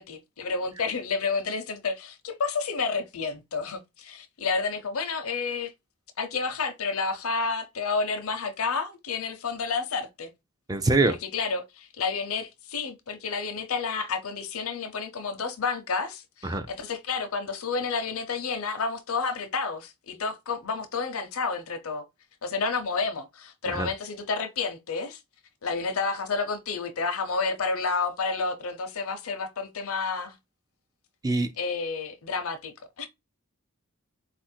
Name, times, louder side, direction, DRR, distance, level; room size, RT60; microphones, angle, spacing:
voice 1, 0.0-5.7 6.2-10.3 11.1-22.0 22.4-25.2 25.6-30.4 31.6-33.1, left 4 dB, 70° left, 0.7 m, -30 dB
voice 2, 10.7-11.2 16.4-16.6 23.7-23.9 31.2-31.5, right 2 dB, 15° right, 0.4 m, -23 dB
4.1 x 2.5 x 4.3 m
head